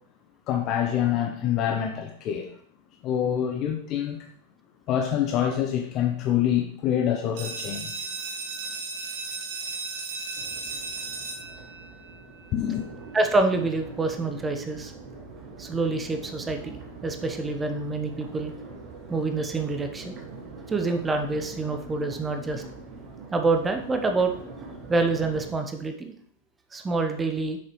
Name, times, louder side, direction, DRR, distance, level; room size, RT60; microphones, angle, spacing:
voice 1, 0.5-2.5 3.0-4.2 4.9-8.1 12.5-12.9, left 10 dB, 35° left, 0.7 m, -26 dB
sound 1, 7.4-12.8, right 4 dB, 55° right, 1.3 m, -35 dB
Crowd, 10.4-25.5, right 3 dB, 35° right, 1.3 m, -43 dB
voice 2, 13.1-14.9 15.6-16.8 17.0-18.5 19.1-20.2 20.7-22.6 23.3-24.3 24.9-26.1 26.7-27.6, right 3 dB, 15° right, 0.9 m, -26 dB
7.2 x 6.3 x 3.1 m
figure-of-eight pair, 90°, 0 cm